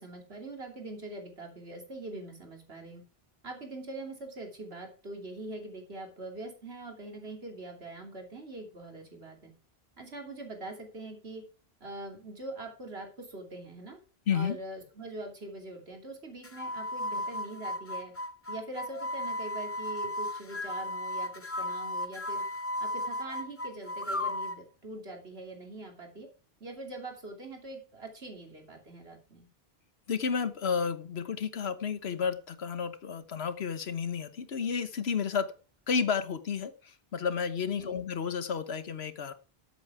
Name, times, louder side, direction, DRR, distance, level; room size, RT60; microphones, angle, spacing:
voice 1, 0.0-3.0 3.4-9.5 10.0-11.4 11.8-14.0 14.3-18.1 18.5-22.4 22.8-26.3 26.6-29.5 37.7-38.0, right 2 dB, 80° right, 2 dB, 3.2 m, -43 dB
voice 2, 14.3-14.6 30.1-35.5 35.9-39.3, left 6 dB, 80° left, 12 dB, 1.3 m, -31 dB
sound 1, 16.4-24.6, left 1 dB, 15° left, 0.6 m, -35 dB
13.0 x 7.9 x 4.8 m, 0.37 s
omnidirectional pair, 1.0 m